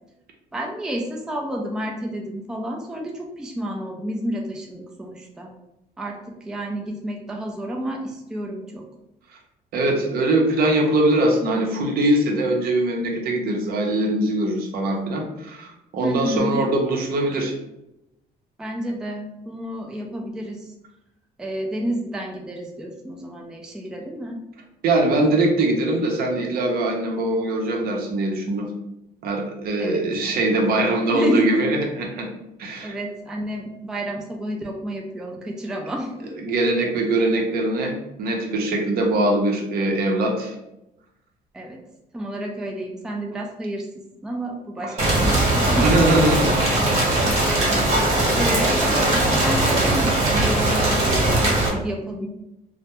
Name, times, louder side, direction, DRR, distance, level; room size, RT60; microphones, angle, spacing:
voice 1, 0.5-5.5 6.0-6.2 6.5-8.8 16.0-16.6 18.6-20.7 21.4-24.4 29.8-30.0 31.1-31.6 32.8-36.3 41.5-41.8 42.1-43.9 44.2-46.3 47.5-52.3, right 1 dB, 5° right, 0 dB, 0.3 m, -30 dB
voice 2, 9.7-17.5 24.8-28.7 29.2-32.3 32.6-33.0 36.4-40.5 44.8-45.0 45.8-46.7 47.1-47.5, right 2 dB, 65° right, 2 dB, 0.6 m, -22 dB
Rain, 45.0-51.7, right 1 dB, 40° right, 1.0 m, -20 dB
2.2 x 2.0 x 2.9 m, 0.88 s
cardioid pair, 110°, 17 cm